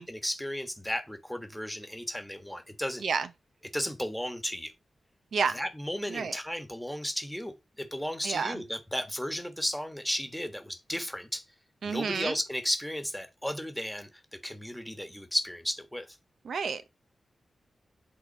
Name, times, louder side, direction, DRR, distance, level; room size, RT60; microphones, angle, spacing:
voice 1, 0.0-3.0 3.7-4.7 5.5-11.4 11.8-14.1 14.4-16.2, equal, ahead, 1.4 m, -34 dB
voice 2, 8.2-8.6 11.8-12.4 16.4-16.9, right 5 dB, 80° right, 0.7 m, -30 dB
8.4 x 3.9 x 5.3 m
wide cardioid pair, 95°, 0 cm